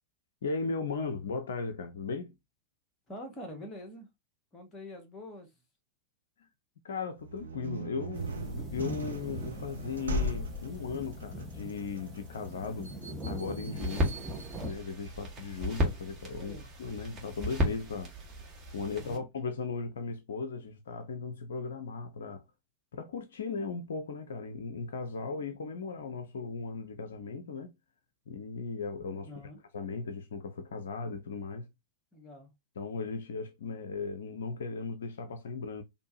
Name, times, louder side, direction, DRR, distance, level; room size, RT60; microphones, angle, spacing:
voice 1, 0.4-2.3 6.4-6.5 6.8-12.9 13.3-14.2 14.6-16.5 16.8-18.1 18.7-22.4 22.9-27.7 28.3-29.3 29.7-31.7 32.8-35.8, left 4 dB, 65° left, 0.5 m, -37 dB
voice 2, 3.1-4.1 4.5-5.5 16.4-16.7 18.9-19.3 25.1-25.5 29.2-29.6 32.1-32.5, left 1 dB, 20° left, 1.5 m, -46 dB
sound 1, 7.2-15.9, right 1 dB, 70° right, 0.6 m, -39 dB
sound 2, 8.1-14.7, equal, 10° right, 1.4 m, -42 dB
sound 3, 13.8-19.2, left 1 dB, 25° right, 1.6 m, -34 dB
4.4 x 2.8 x 2.8 m
figure-of-eight pair, 90°, 0 cm